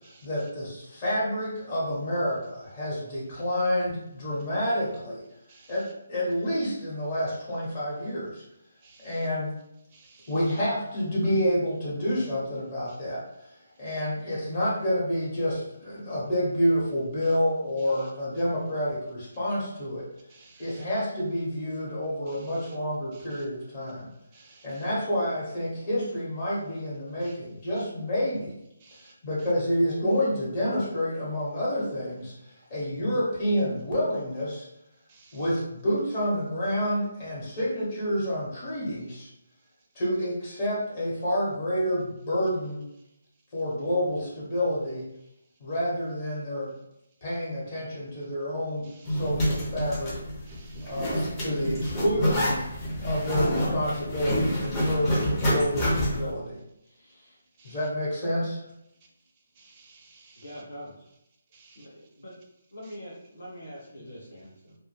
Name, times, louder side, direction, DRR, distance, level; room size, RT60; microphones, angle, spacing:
voice 1, 0.2-5.2 5.7-8.4 9.0-9.5 10.3-20.1 20.6-24.1 24.6-28.5 29.0-32.3 32.7-34.6 35.3-39.3 39.9-42.8 43.5-45.1 45.6-46.7 47.2-50.1 50.8-52.6 53.0-56.6 57.6-58.6, equal, 35° left, -7 dB, 1.0 m, -29 dB
voice 2, 8.8-9.2 9.9-10.3 20.3-20.8 24.3-24.8 27.2-27.3 28.8-29.1 35.1-35.4 49.1-49.2 50.5-51.2 57.6-57.8 59.6-60.4 61.5-61.8, right 4 dB, 25° right, -2 dB, 0.5 m, -56 dB
Zipper (clothing), 49.0-56.3, equal, 20° left, 0.6 m, -27 dB
voice 3, 60.4-61.1 61.8-62.3 62.7-64.8, equal, 75° left, -5 dB, 0.7 m, -43 dB
2.1 x 2.1 x 3.1 m, 0.83 s
hypercardioid pair, 155°, 0 cm